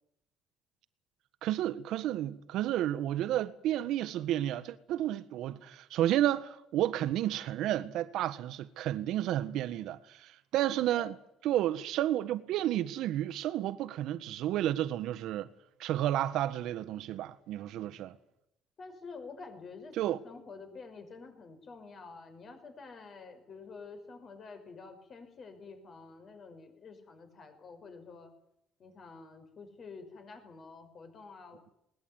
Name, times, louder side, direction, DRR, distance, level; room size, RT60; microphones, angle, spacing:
voice 1, 1.4-11.2 11.4-15.5 15.8-18.2 19.9-20.2, right 13 dB, 70° right, 1.5 m, -31 dB
voice 2, 18.8-28.3 28.8-31.6, left 4 dB, 40° left, 5.7 m, -49 dB
20.5 x 19.5 x 9.6 m
cardioid pair, 135°, 0 cm